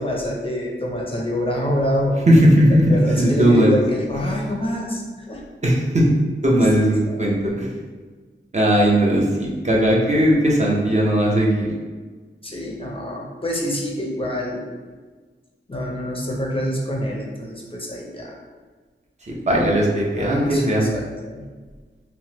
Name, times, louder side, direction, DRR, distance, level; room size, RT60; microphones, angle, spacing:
voice 1, 0.0-2.2 2.9-5.4 6.4-6.6 7.1-7.3 12.4-14.6 15.7-18.4 20.2-21.5, equal, 25° left, -2 dB, 0.5 m, -26 dB
voice 2, 2.3-3.7 5.6-6.2 6.4-7.7 8.5-11.7 19.3-20.9, equal, 35° right, -3 dB, 0.6 m, -17 dB
2.9 x 2.1 x 2.9 m, 1.4 s
wide cardioid pair, 55°, 21 cm